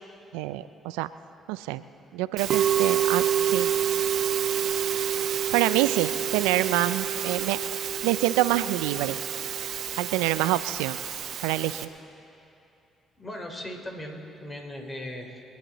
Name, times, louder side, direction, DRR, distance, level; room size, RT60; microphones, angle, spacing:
voice 1, 0.3-1.1 1.5-1.8 2.1-3.7 5.5-7.6 8.0-9.2 10.0-11.0 11.4-11.9, right 15 dB, 85° right, 14 dB, 0.4 m, -26 dB
Musical instrument, 2.4-11.8, right 9 dB, 65° right, 0.8 m, -28 dB
voice 2, 13.2-15.4, left 1 dB, 30° left, 2 dB, 3.2 m, -38 dB
24.5 x 10.0 x 4.0 m, 2.7 s
hypercardioid pair, 55°, 0 cm